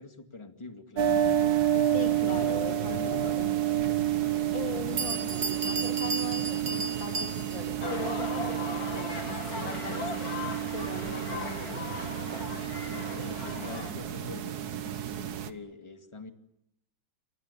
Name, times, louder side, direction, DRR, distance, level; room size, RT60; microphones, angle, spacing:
voice 1, 0.0-1.3 2.1-3.4 12.9-14.6 15.4-16.3, left 3 dB, 15° left, 6 dB, 2.2 m, -44 dB
sound 1, 1.0-15.5, right 10 dB, 60° right, 1.6 m, -30 dB
voice 2, 1.9-3.5 4.1-10.3 10.7-11.8, left 4 dB, 85° left, 3 dB, 4.1 m, -40 dB
Bell, 4.6-4.7 5.0-7.8, right 4 dB, 40° right, 1.4 m, -34 dB
sound 2, 7.8-13.9, left 4 dB, 55° left, 3.4 m, -38 dB
28.5 x 24.0 x 7.0 m, 0.80 s
omnidirectional pair, 2.0 m